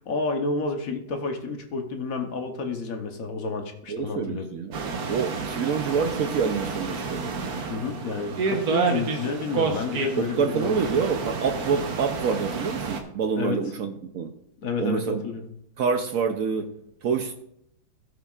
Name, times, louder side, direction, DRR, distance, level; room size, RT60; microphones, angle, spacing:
voice 1, 0.1-4.5 7.7-10.7 13.4-13.6 14.6-15.5, left 4 dB, 55° left, 1.2 m, -30 dB
voice 2, 3.9-4.8 5.1-7.3 10.2-14.3 14.8-15.2 15.8-16.7 17.0-17.3, right 5 dB, 75° right, 0.8 m, -27 dB
sound 1, 4.7-13.0, right 5 dB, 55° right, 1.4 m, -30 dB
16.5 x 7.2 x 2.4 m
omnidirectional pair, 2.1 m